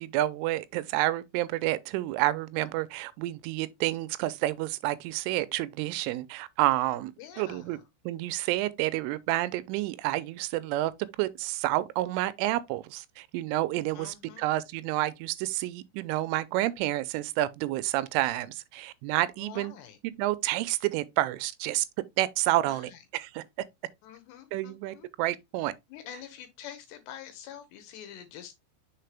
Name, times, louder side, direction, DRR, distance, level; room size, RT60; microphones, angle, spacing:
voice 1, 0.0-7.1 7.4-7.8 8.1-10.9 11.2-19.7 20.0-21.9 22.2-23.4 24.5-25.7, right 16 dB, 90° right, 3.1 m, -29 dB
voice 2, 7.2-7.8 13.9-14.5 19.4-20.0 22.6-23.0 24.0-25.1 25.9-28.6, left 10 dB, 75° left, 2.8 m, -46 dB
6.6 x 4.3 x 3.4 m
omnidirectional pair, 5.5 m